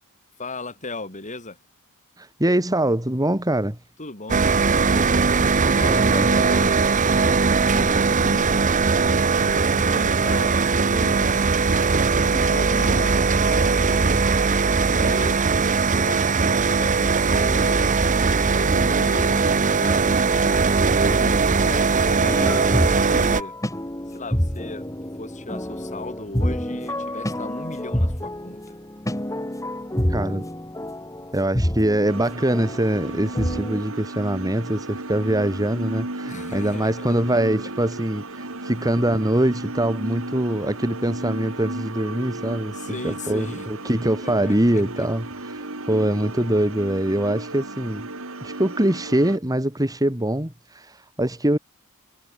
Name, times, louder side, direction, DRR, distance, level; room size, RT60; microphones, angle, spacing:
voice 1, 0.4-1.6 4.0-5.2 5.7-6.8 7.6-8.7 9.4-11.4 12.2-14.2 14.9-15.4 15.9-20.6 21.0-23.5 24.1-24.9 25.2-28.8 36.3-37.2 42.7-43.7 44.2-45.1, left 2 dB, 35° left, 6.5 m, -36 dB
voice 2, 2.2-3.8 5.8-6.3 30.1-30.5 31.3-42.7 43.0-45.2 45.9-48.1 48.4-50.9 51.2-51.6, right 1 dB, 15° right, 2.7 m, -23 dB
sound 1, 4.3-23.4, right 4 dB, 35° right, 0.8 m, -20 dB
sound 2, 22.2-33.8, equal, 15° left, 3.4 m, -28 dB
sound 3, 32.1-49.4, right 2 dB, 65° right, 4.5 m, -34 dB
head